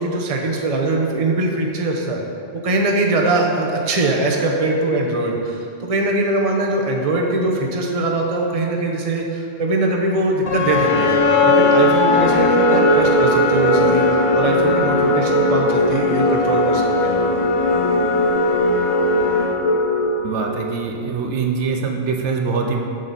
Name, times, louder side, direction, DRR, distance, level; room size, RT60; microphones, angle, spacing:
voice 1, 0.0-2.2 2.6-11.2 11.5-14.1 14.3-17.2, right 2 dB, 35° right, 0 dB, 0.8 m, -21 dB
sound 1, 10.5-20.7, left 2 dB, 60° left, 0.3 m, -17 dB
voice 2, 20.2-22.8, right 5 dB, 85° right, 2 dB, 1.0 m, -23 dB
7.1 x 6.6 x 4.1 m, 2.6 s
omnidirectional pair, 1.2 m